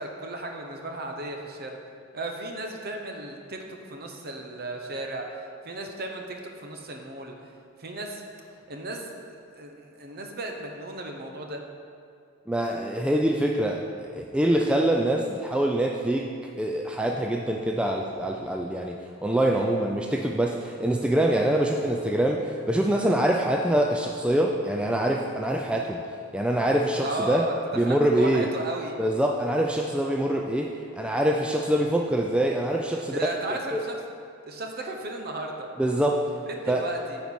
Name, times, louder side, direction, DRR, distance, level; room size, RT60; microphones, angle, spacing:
voice 1, 0.0-1.8 2.1-3.6 3.9-5.3 5.6-7.5 7.8-8.2 8.7-11.6 27.0-27.6 27.9-29.0 33.1-34.0 34.5-35.7 36.5-37.2, right 2 dB, 50° right, 2 dB, 0.9 m, -35 dB
voice 2, 12.5-16.3 16.6-26.0 26.3-27.5 27.7-28.5 29.0-33.2 33.7-33.8 35.8-36.3 36.7-36.9, right 1 dB, 5° right, 1 dB, 0.3 m, -25 dB
9.3 x 4.6 x 5.5 m, 2.3 s
head